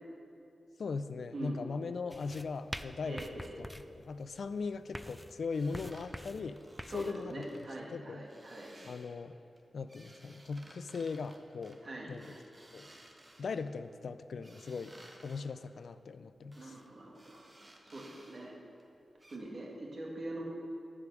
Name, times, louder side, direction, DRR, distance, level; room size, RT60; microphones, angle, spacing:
voice 1, 0.8-6.6 6.9-7.7 7.9-8.3 8.8-9.4 9.7-11.8 12.1-12.3 12.7-12.9 13.4-15.0 15.2-16.8, left 4 dB, 75° left, 12 dB, 0.4 m, -39 dB
voice 2, 1.3-1.7 3.0-3.6 6.9-8.7 11.8-12.1 16.6-17.4 17.8-18.5 19.3-20.4, right 1 dB, 55° right, -3 dB, 2.0 m, -43 dB
sound 1, 2.1-7.1, equal, 5° left, 0.4 m, -46 dB
sound 2, 5.5-7.8 8.3-9.2 9.6-13.8 14.4-15.4 16.5-16.9 17.1-18.5 18.8-18.9 19.2-19.4, right 1 dB, 30° right, 1.3 m, -58 dB
13.5 x 5.0 x 6.2 m, 2.8 s
cardioid pair, 65°, 0 cm